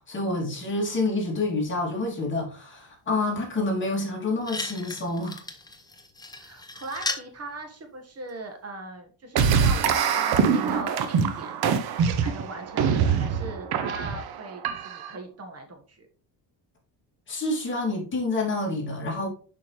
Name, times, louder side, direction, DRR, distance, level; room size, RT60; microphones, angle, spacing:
voice 1, 0.1-5.4 17.3-19.3, left 2 dB, 25° left, 2.9 m, -28 dB
sound 1, 4.0-4.1 4.4-7.3 8.3-8.4, left 2 dB, 10° left, 0.9 m, -36 dB
voice 2, 6.4-11.6 11.8-16.1, right 2 dB, 35° right, 1.7 m, -39 dB
sound 2, 9.4-15.2, right 6 dB, 60° right, 1.0 m, -24 dB
6.8 x 5.5 x 3.3 m
cardioid pair, 130°, 42 cm